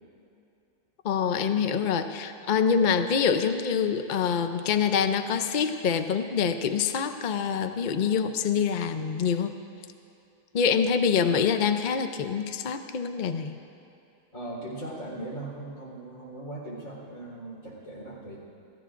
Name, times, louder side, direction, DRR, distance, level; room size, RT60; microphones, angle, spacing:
voice 1, 1.0-9.5 10.5-13.6, left 6 dB, 80° left, 8 dB, 0.4 m, -25 dB
voice 2, 14.3-18.4, right 1 dB, 50° left, -4 dB, 4.4 m, -39 dB
28.5 x 15.0 x 2.5 m, 2.7 s
omnidirectional pair, 1.7 m